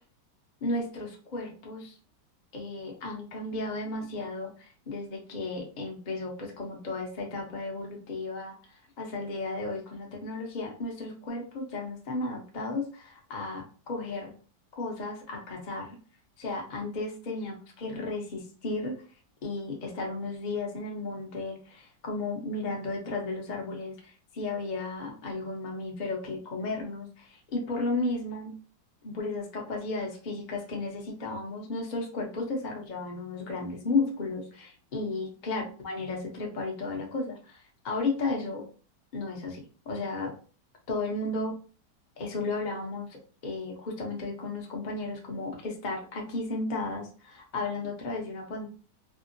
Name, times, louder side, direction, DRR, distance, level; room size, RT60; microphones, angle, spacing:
voice 1, 0.6-1.9 2.5-14.3 14.8-15.9 16.4-18.9 19.4-28.5 29.0-38.6 39.1-40.3 40.9-41.5 42.2-48.7, left 3 dB, 45° left, -1 dB, 0.6 m, -34 dB
3.5 x 2.0 x 2.6 m, 0.37 s
omnidirectional pair, 1.9 m